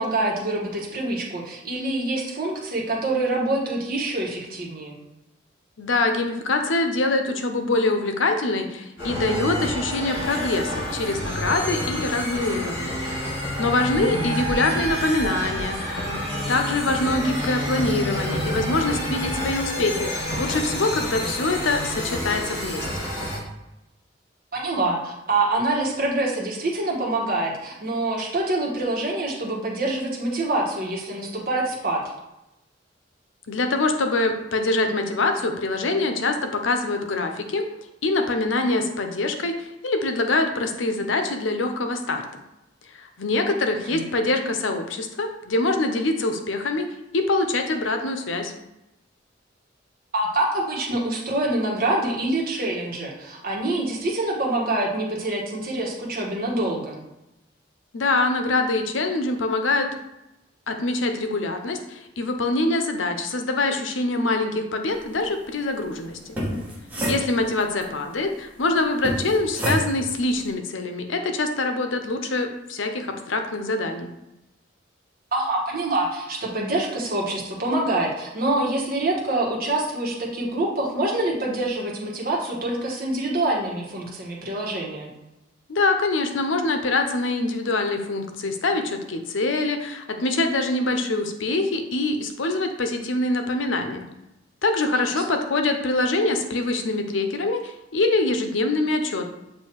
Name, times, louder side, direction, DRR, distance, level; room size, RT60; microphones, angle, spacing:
voice 1, 0.0-5.0 13.9-14.3 24.5-32.0 43.7-44.0 50.1-57.0 75.3-85.1 95.0-95.1, right 2 dB, 50° right, -2 dB, 1.3 m, -26 dB
voice 2, 5.8-13.0 13.6-16.2 16.5-22.9 33.5-37.6 38.0-42.2 43.0-46.9 47.1-48.5 57.9-59.9 60.7-66.2 67.0-74.1 85.7-94.1 94.6-99.3, left 2 dB, 90° left, 6 dB, 0.7 m, -24 dB
sound 1, 9.0-23.4, equal, 65° left, 2.2 m, -29 dB
sound 2, 66.2-67.8 69.0-70.2, equal, 10° right, 1.3 m, -28 dB
7.5 x 2.7 x 4.6 m, 0.92 s
head